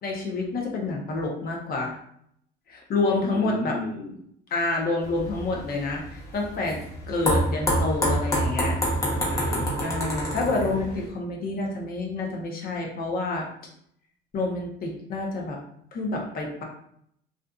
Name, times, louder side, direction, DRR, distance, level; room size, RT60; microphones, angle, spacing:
voice 1, 0.0-2.0 2.7-3.8 4.5-6.8 7.1-8.8 9.8-13.5 14.3-15.6 15.9-16.6, left 3 dB, 45° left, 0 dB, 0.6 m, -28 dB
voice 2, 3.3-4.1 9.0-9.7, left 2 dB, 5° right, -5 dB, 1.2 m, -33 dB
sound 1, 5.0-11.1, equal, 15° left, 0.9 m, -27 dB
2.4 x 2.4 x 2.2 m, 0.70 s
cardioid pair, 105°, 21 cm